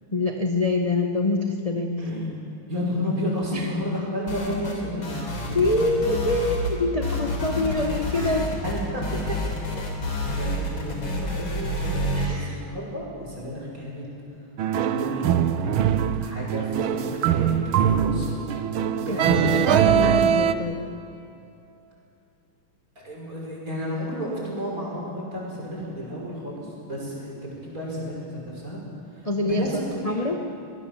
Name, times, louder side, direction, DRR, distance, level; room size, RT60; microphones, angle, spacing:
voice 1, 0.1-2.3 3.5-3.7 5.5-8.5 12.1-12.6 19.1-19.2 19.4-20.9 29.2-29.6 30.0-30.4, left 2 dB, 20° left, 2 dB, 1.1 m, -25 dB
voice 2, 2.0-2.3 2.7-5.8 8.6-9.0 10.3-14.1 14.8-15.8 16.2-18.4 18.9-20.1 23.0-28.8 29.1-30.4, equal, 40° right, -4 dB, 6.4 m, -32 dB
sound 1, 4.3-4.8 5.0-6.7 7.0-12.3, left 1 dB, 80° left, 4.4 m, -28 dB
sound 2, 14.6-20.5, right 9 dB, 85° right, 1.7 m, -22 dB
24.5 x 19.0 x 7.2 m, 2.7 s
omnidirectional pair, 2.2 m